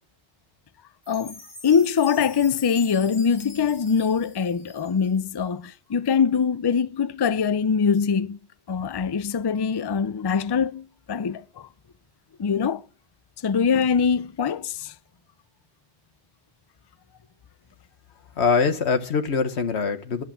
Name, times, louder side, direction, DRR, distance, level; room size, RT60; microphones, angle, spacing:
Chime, 1.0-5.2, left 3 dB, 15° left, 4.3 m, -44 dB
voice 1, 1.1-8.4 8.7-11.7 12.4-12.8 13.4-14.9, left 6 dB, 40° left, 0.3 m, -23 dB
voice 2, 18.4-20.2, left 5 dB, 70° left, 1.5 m, -23 dB
11.0 x 7.4 x 7.5 m
omnidirectional pair, 1.2 m